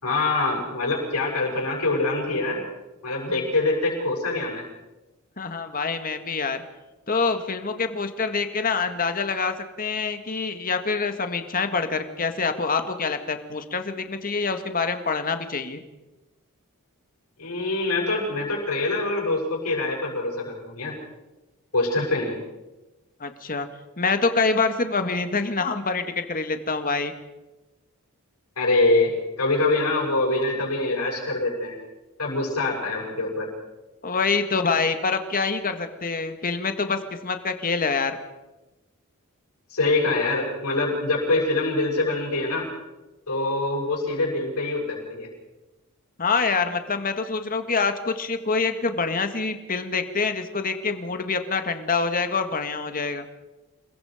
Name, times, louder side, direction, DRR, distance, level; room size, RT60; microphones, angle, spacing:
voice 1, 0.0-2.6 3.0-4.6 17.4-21.0 21.7-22.4 28.6-31.8 32.2-33.5 39.7-42.7 43.3-45.3, left 2 dB, 85° left, -1 dB, 7.2 m, -24 dB
voice 2, 5.4-6.6 7.1-15.8 23.2-23.7 24.0-27.1 34.0-38.2 46.2-53.2, left 4 dB, 40° left, 7 dB, 1.8 m, -26 dB
28.5 x 21.5 x 5.1 m, 1.1 s
head